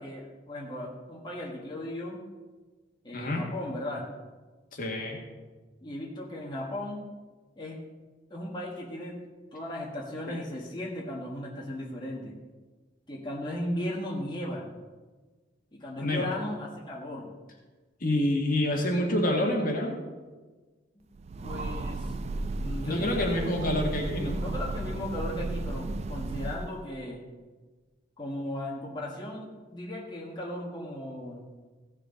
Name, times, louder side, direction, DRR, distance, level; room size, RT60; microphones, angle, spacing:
voice 1, 0.0-2.2 3.0-4.1 5.8-7.0 7.6-7.9 8.3-9.2 9.5-12.4 13.1-14.7 15.7-17.3 21.4-22.1 22.6-23.3 24.4-27.2 28.2-31.5, left 1 dB, 25° left, -4 dB, 1.5 m, -36 dB
voice 2, 3.1-3.4 4.7-5.2 10.3-10.4 16.0-16.3 18.0-20.0 22.9-24.4, left 1 dB, 50° left, 0 dB, 1.7 m, -27 dB
Train, 21.1-26.9, right 2 dB, 35° right, 0.4 m, -34 dB
16.0 x 6.5 x 3.9 m, 1.3 s
head